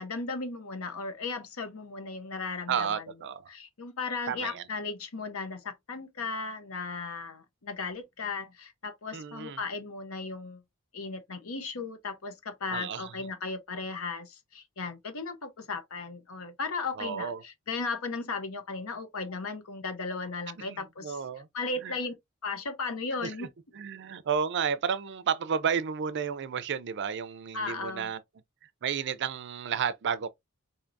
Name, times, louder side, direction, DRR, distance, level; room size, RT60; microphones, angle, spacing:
voice 1, 0.0-3.0 3.5-10.6 10.9-21.2 21.5-22.1 22.4-23.5 27.5-28.1, left 4 dB, 65° left, 0.8 m, -36 dB
voice 2, 2.7-3.5 4.3-4.6 9.1-9.6 12.7-13.1 17.0-17.4 20.7-21.5 21.8-21.9 23.2-23.5 23.7-28.2 28.8-30.3, right 7 dB, 50° right, 0.4 m, -32 dB
4.5 x 2.8 x 2.5 m
head